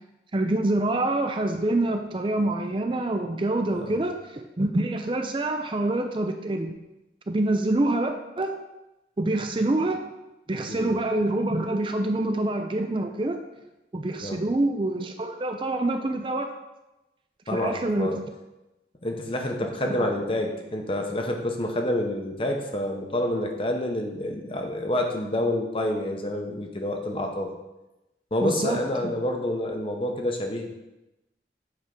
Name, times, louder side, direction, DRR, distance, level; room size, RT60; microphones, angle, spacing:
voice 1, 0.3-6.8 7.3-8.5 9.2-10.0 10.5-13.4 13.9-16.5 17.5-18.1 19.8-20.1 28.4-29.1, right 2 dB, 30° right, 5 dB, 0.4 m, -26 dB
voice 2, 17.5-18.2 19.0-27.5 28.3-30.7, left 1 dB, 30° left, 3 dB, 0.8 m, -28 dB
8.0 x 3.6 x 5.2 m, 0.98 s
head